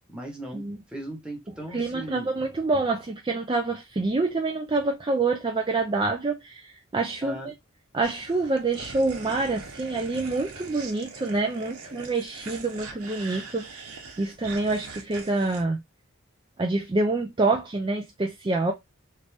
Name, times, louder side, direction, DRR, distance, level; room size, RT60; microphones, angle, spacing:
voice 1, 0.1-2.3 7.2-7.5, right 1 dB, 5° right, 1.0 m, -38 dB
voice 2, 1.7-7.5 7.9-13.9 14.2-15.8 16.6-18.7, right 3 dB, 20° right, 0.4 m, -27 dB
sound 1, 8.0-15.6, right 4 dB, 90° right, 1.0 m, -42 dB
3.2 x 2.6 x 3.3 m
head